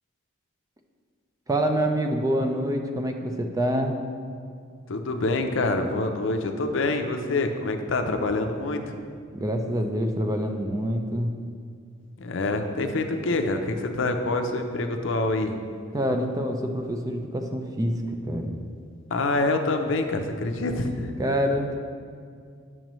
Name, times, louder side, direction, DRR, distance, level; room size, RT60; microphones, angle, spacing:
voice 1, 1.5-4.0 9.3-11.3 15.9-18.5 21.2-21.8, equal, 15° right, 4 dB, 0.4 m, -26 dB
voice 2, 4.9-8.9 12.2-15.5 19.1-21.2, left 2 dB, 65° left, 5 dB, 0.6 m, -26 dB
8.9 x 6.2 x 3.1 m, 2.2 s
head